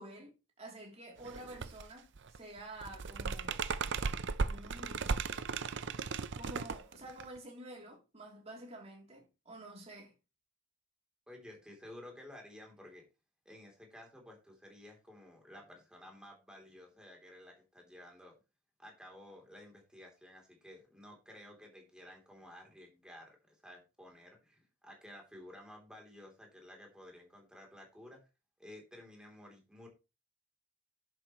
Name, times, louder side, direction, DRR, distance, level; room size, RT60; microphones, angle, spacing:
voice 1, 0.0-3.7 4.4-5.2 6.3-10.1, right 1 dB, 30° right, 3.2 m, -49 dB
sound 1, 1.2-1.9 2.2-7.4, right 4 dB, 55° right, 0.6 m, -36 dB
voice 2, 11.3-13.0 13.4-18.3 18.8-28.2 28.6-29.9, left 1 dB, 5° right, 3.3 m, -53 dB
11.0 x 7.8 x 3.1 m
head